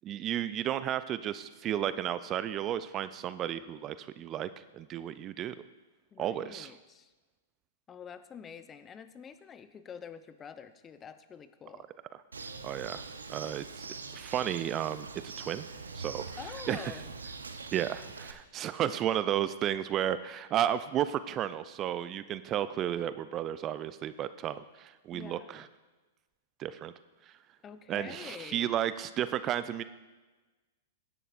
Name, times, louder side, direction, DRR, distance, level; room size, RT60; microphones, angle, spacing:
voice 1, 0.0-5.6 6.2-6.7 12.6-13.0 13.3-13.9 14.1-15.1 15.4-15.7 15.9-16.2 16.7-16.8 17.7-25.6 26.6-26.9 27.9-29.8, right 11 dB, 30° right, 14 dB, 0.4 m, -33 dB
voice 2, 6.1-7.1 7.9-11.9 16.4-17.2 25.1-25.6 27.6-28.7, left 7 dB, 20° left, 12 dB, 0.7 m, -47 dB
Bird, 12.3-18.3, right 4 dB, 85° right, 0.8 m, -43 dB
16.5 x 10.5 x 2.5 m, 1.2 s
figure-of-eight pair, 105°, 0 cm